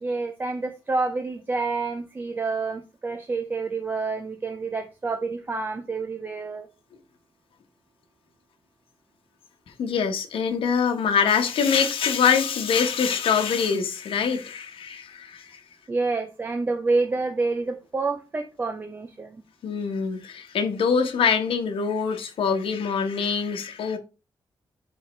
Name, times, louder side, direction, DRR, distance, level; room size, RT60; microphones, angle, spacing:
voice 1, 0.0-6.7 15.9-19.4, right 3 dB, 20° right, 0.5 m, -28 dB
voice 2, 9.8-15.6 19.6-24.0, left 6 dB, 90° left, 1.1 m, -24 dB
10.5 x 3.4 x 3.1 m
wide cardioid pair, 175°, 9 cm